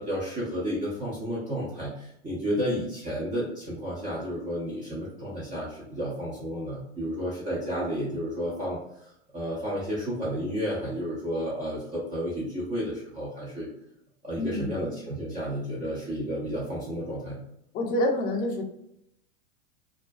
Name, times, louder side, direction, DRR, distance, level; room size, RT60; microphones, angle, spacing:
voice 1, 0.0-13.7 14.2-17.4, equal, 20° right, -7 dB, 0.6 m, -32 dB
voice 2, 14.4-14.7 17.7-18.6, left 1 dB, 25° left, 1 dB, 0.4 m, -27 dB
2.3 x 2.1 x 2.5 m, 0.78 s
hypercardioid pair, 120°, 37 cm